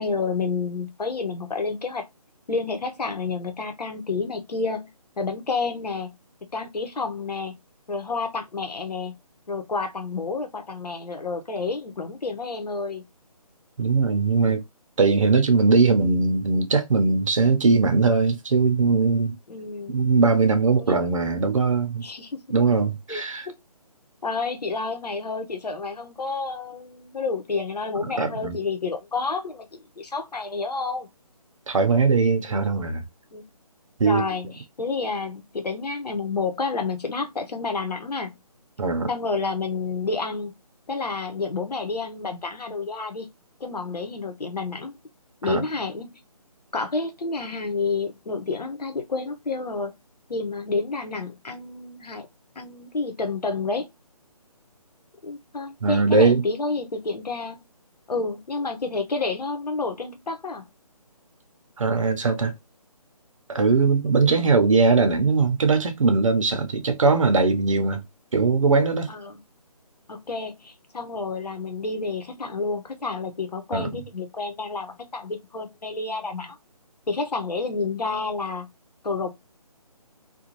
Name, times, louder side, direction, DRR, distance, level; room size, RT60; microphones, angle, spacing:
voice 1, 0.0-2.1 2.5-4.9 5.2-6.1 6.5-7.6 7.9-9.1 9.5-13.0 19.5-20.0 20.8-21.1 22.0-22.4 23.1-23.6 24.2-31.1 32.5-32.7 33.3-33.5 34.0-38.3 39.1-40.5 40.9-43.3 43.6-45.0 45.4-46.1 46.7-49.9 50.3-52.3 52.6-53.9 55.2-57.6 58.1-60.7 64.2-64.5 69.1-69.4 70.1-76.6 77.1-78.7 79.0-79.3, left 4 dB, 90° left, 0.9 m, -29 dB
voice 2, 13.8-14.6 15.0-19.3 19.9-22.1 22.5-23.5 28.0-28.6 31.7-33.0 34.0-34.2 38.8-39.1 45.5-45.6 55.8-56.4 61.8-62.5 63.5-68.0 68.3-69.1 73.7-73.9, right 4 dB, 55° right, 0.7 m, -20 dB
2.6 x 2.3 x 2.9 m
hypercardioid pair, 170°, 20 cm